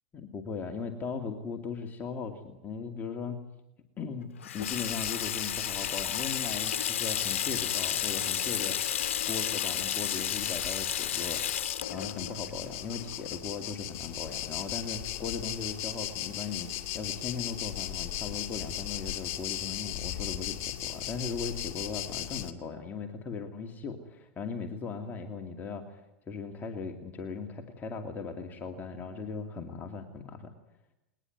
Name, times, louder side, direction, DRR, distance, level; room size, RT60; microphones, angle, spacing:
voice 1, 0.1-3.4 4.0-8.8 9.2-11.4 11.9-30.5, left 5 dB, 25° left, 4 dB, 2.6 m, -38 dB
Water tap faucet / Sink (filling or washing), 4.4-13.7, left 10 dB, 85° left, 0.9 m, -32 dB
sound 1, 4.6-22.5, left 13 dB, 50° left, 2.2 m, -38 dB
21.5 x 20.0 x 9.6 m, 0.87 s
hypercardioid pair, 120°, 7 cm